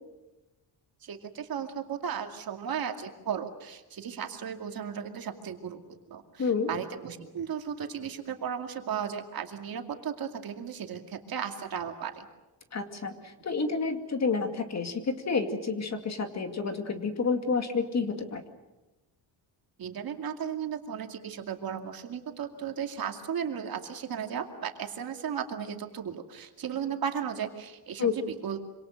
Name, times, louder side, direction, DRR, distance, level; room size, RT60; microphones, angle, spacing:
voice 1, 1.0-5.8 6.1-12.3 19.8-28.6, right 8 dB, 55° right, 4 dB, 2.4 m, -35 dB
voice 2, 12.7-18.4 28.0-28.1, left 4 dB, 40° left, 6 dB, 2.3 m, -29 dB
26.5 x 26.0 x 6.5 m, 1.0 s
wide cardioid pair, 155°, 42 cm